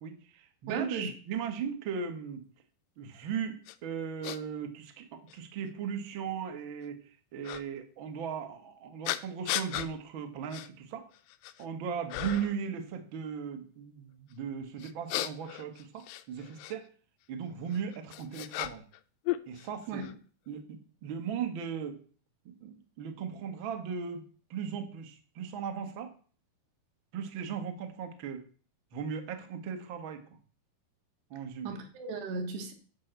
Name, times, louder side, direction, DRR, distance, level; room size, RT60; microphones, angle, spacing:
voice 1, 0.0-2.4 3.0-3.6 3.8-7.0 7.3-11.0 11.6-16.8 17.3-18.8 19.5-20.1 20.5-22.0 22.4-24.2 24.5-26.1 27.1-28.4 28.9-30.2 31.3-31.8, right 7 dB, 55° right, 1.4 m, -37 dB
voice 2, 0.7-1.1 19.9-20.2 31.6-32.7, right 4 dB, 85° right, 3.9 m, -36 dB
sound 1, 3.7-3.8 4.2-4.4 5.3-5.4 7.4-7.6 9.0-9.9 10.5-10.7 11.1-11.6 12.1-12.6 14.8-16.8 17.7-19.0 19.2-20.1, left 15 dB, 85° left, 2.7 m, -36 dB
10.0 x 5.7 x 8.1 m
omnidirectional pair, 4.7 m